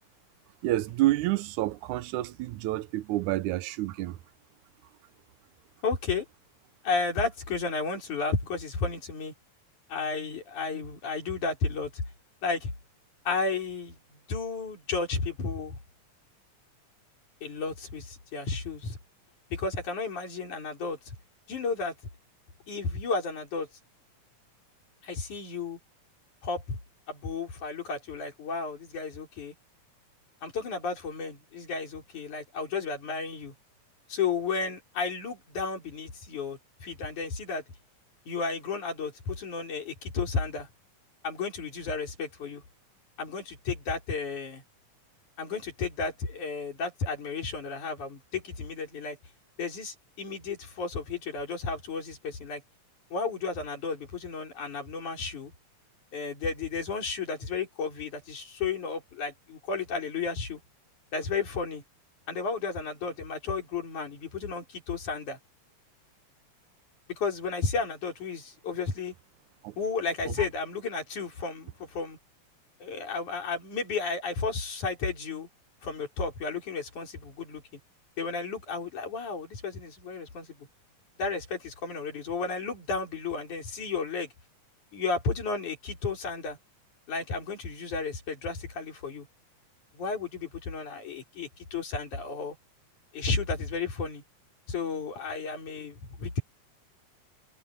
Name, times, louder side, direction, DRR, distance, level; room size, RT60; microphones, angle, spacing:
voice 1, 0.6-4.2 69.6-69.7, right 16 dB, 80° right, 2.2 m, -28 dB
voice 2, 5.8-6.3 6.8-9.3 9.9-12.0 12.4-12.7 13.3-15.8 17.4-19.0 19.5-21.0 21.5-21.9 22.7-23.7 25.0-25.8 26.4-26.8 27.1-29.5 30.4-33.5 34.1-37.6 38.3-40.7 41.2-42.6 43.2-44.6 45.4-49.2 49.6-52.6 53.1-55.5 56.1-60.6 61.1-61.8 62.3-65.4 67.1-69.1 69.8-72.2 72.8-75.5 75.8-77.6 78.2-80.6 81.2-84.3 84.9-86.6 87.1-89.3 89.9-92.6 93.1-94.2 94.7-96.4, left 4 dB, 75° left, 6.3 m, -33 dB
omnidirectional pair, 3.5 m